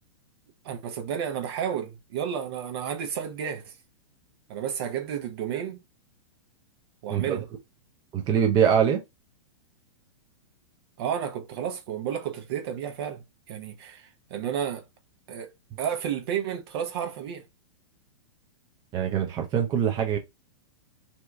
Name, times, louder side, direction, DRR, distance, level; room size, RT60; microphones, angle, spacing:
voice 1, 0.6-3.7 4.5-5.8 7.0-7.4 11.0-14.8 15.3-15.5 15.8-17.4, right 8 dB, 50° right, 0.8 m, -32 dB
voice 2, 7.1-7.4 8.1-9.0 18.9-20.2, right 8 dB, 25° right, 0.6 m, -23 dB
2.8 x 2.3 x 3.4 m
figure-of-eight pair, 105°, 16 cm